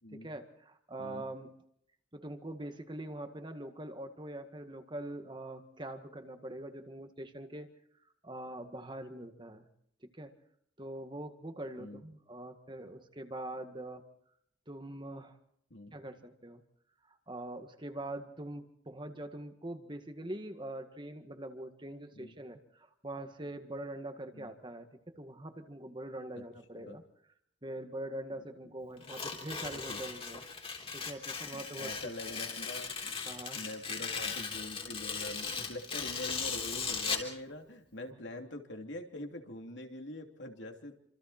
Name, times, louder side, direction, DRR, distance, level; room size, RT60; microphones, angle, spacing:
voice 1, 0.1-1.5 2.1-7.7 8.2-9.7 10.1-10.3 10.8-14.0 14.7-15.4 15.9-16.6 17.3-24.9 25.2-27.0 27.6-30.4 30.9-31.9 33.3-33.6 38.0-38.2, right 1 dB, 25° right, 7 dB, 1.9 m, -43 dB
Tearing, 29.0-37.3, left 5 dB, 30° left, 3.4 m, -38 dB
voice 2, 31.5-33.2 33.5-41.0, left 1 dB, 70° left, 4 dB, 3.1 m, -44 dB
28.0 x 26.5 x 4.4 m, 0.70 s
head